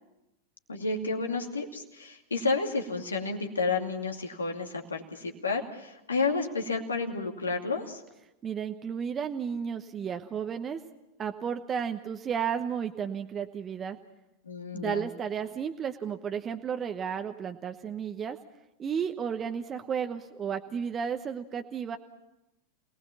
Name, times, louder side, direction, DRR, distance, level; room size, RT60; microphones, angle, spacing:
voice 1, 0.7-8.0 14.5-15.1, left 4 dB, 75° left, 3 dB, 2.5 m, -31 dB
voice 2, 8.4-10.8 11.2-14.0 14.7-18.4 18.8-22.0, right 7 dB, 25° right, 6 dB, 1.0 m, -33 dB
27.5 x 19.5 x 7.2 m, 0.94 s
figure-of-eight pair, 90°, 0 cm